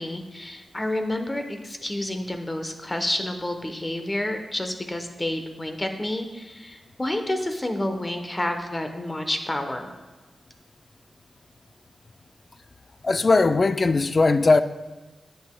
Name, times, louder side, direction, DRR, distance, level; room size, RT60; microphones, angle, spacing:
voice 1, 0.0-9.9, left 1 dB, 25° left, 0.9 m, -29 dB
voice 2, 13.0-14.6, left 3 dB, 45° left, 0.4 m, -19 dB
10.0 x 6.7 x 2.2 m
cardioid pair, 60°, 0 cm